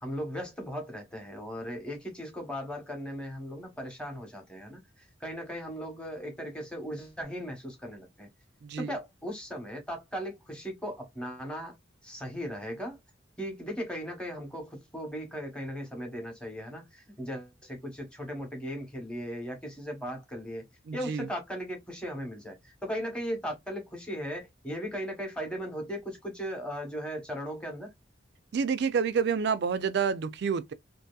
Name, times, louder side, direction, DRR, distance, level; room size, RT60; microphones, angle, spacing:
voice 1, 0.0-8.3 8.8-11.8 12.0-13.0 13.4-20.7 20.9-27.9, equal, 5° left, 0.9 m, -37 dB
voice 2, 20.9-21.3 28.5-30.7, right 6 dB, 60° right, 0.3 m, -28 dB
2.7 x 2.5 x 2.2 m
head